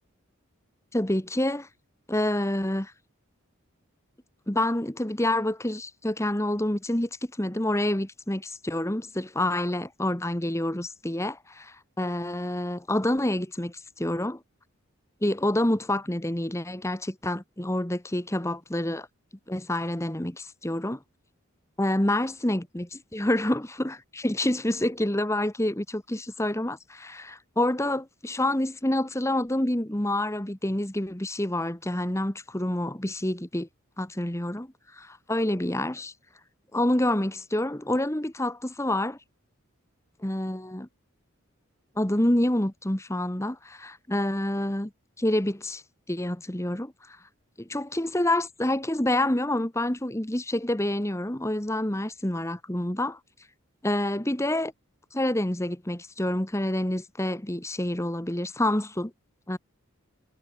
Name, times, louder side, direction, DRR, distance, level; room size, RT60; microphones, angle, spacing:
voice 1, 0.9-1.7 2.1-2.9 4.5-7.1 7.4-14.4 15.2-19.1 19.5-21.0 21.8-33.7 34.0-34.7 35.0-36.1 36.7-39.2 40.2-40.9 42.0-44.9 45.2-45.8 46.1-47.2 47.6-53.2 53.8-54.7 55.1-59.1 59.5-59.6, left 1 dB, 15° left, 1.3 m, -27 dB
head